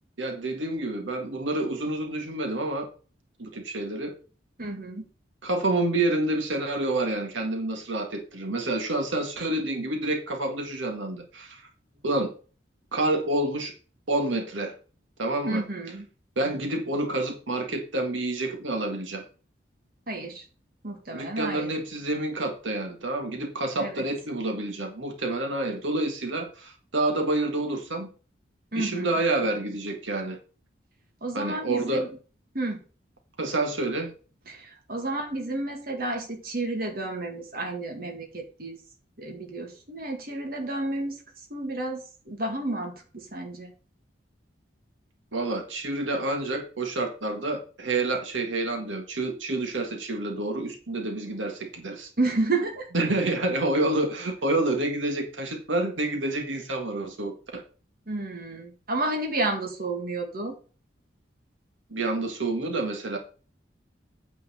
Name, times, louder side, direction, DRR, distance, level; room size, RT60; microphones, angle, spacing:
voice 1, 0.2-2.9 3.4-4.2 5.4-11.6 12.0-12.3 12.9-13.7 14.1-14.7 15.2-15.6 16.4-19.2 21.1-28.1 28.8-30.4 31.3-32.1 33.4-34.1 45.3-52.1 52.9-57.6 61.9-63.2, right 2 dB, 90° right, 3 dB, 1.9 m, -28 dB
voice 2, 4.6-5.1 15.5-16.1 20.1-20.4 20.8-21.7 23.8-24.0 28.7-29.2 31.2-32.1 32.5-32.8 34.5-38.8 39.2-41.2 41.5-43.7 52.2-52.9 58.1-60.6, right 2 dB, 50° right, 3 dB, 2.2 m, -31 dB
9.0 x 4.5 x 6.9 m, 0.37 s
head